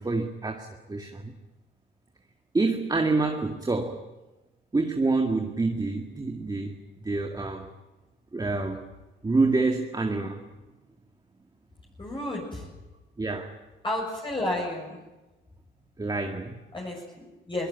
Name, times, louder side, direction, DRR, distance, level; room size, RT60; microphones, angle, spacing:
voice 1, 0.0-1.3 2.5-4.0 4.7-6.7 7.0-7.7 8.3-8.9 9.2-10.4 13.2-13.6 16.0-16.6, right 3 dB, 20° right, 3 dB, 2.1 m, -27 dB
voice 2, 12.0-12.7 13.8-15.0 16.7-17.7, left 1 dB, 25° left, -2 dB, 7.0 m, -32 dB
22.5 x 19.5 x 9.4 m, 1.1 s
cardioid pair, 90°, 20 cm